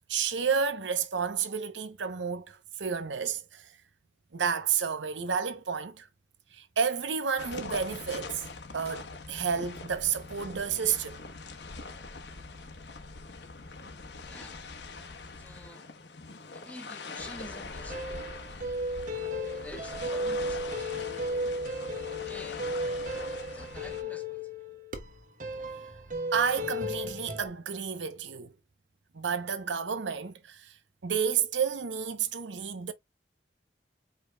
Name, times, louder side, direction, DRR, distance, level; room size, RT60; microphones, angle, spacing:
voice 1, 0.1-3.7 4.3-6.1 6.5-8.4 8.7-11.2 26.3-28.5 29.1-30.8 31.0-32.9, right 6 dB, 80° right, 0.8 m, -31 dB
sound 1, 7.4-24.0, left 3 dB, 70° left, 1.1 m, -43 dB
voice 2, 14.2-14.6 15.3-15.9 16.5-18.0 19.5-21.3 22.0-22.7 23.5-24.6, left 1 dB, 10° left, 1.0 m, -48 dB
sound 2, 17.9-27.5, equal, 45° right, 1.0 m, -34 dB
4.9 x 4.6 x 2.2 m
head